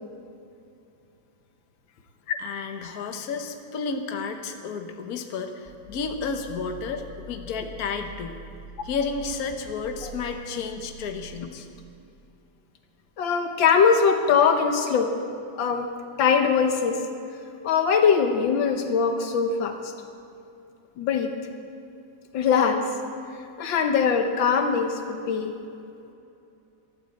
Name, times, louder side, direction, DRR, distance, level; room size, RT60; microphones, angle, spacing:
voice 1, 2.4-8.4 8.8-11.7, left 5 dB, 55° left, 5 dB, 1.5 m, -32 dB
sound 1, 5.6-11.3, right 1 dB, 40° right, 4.1 m, -44 dB
voice 2, 13.2-15.1 15.6-15.9 16.2-17.0 17.6-19.9 21.0-21.3 22.3-22.8 23.6-25.5, left 6 dB, 85° left, 6 dB, 1.8 m, -21 dB
13.5 x 12.0 x 7.7 m, 2.6 s
omnidirectional pair, 2.0 m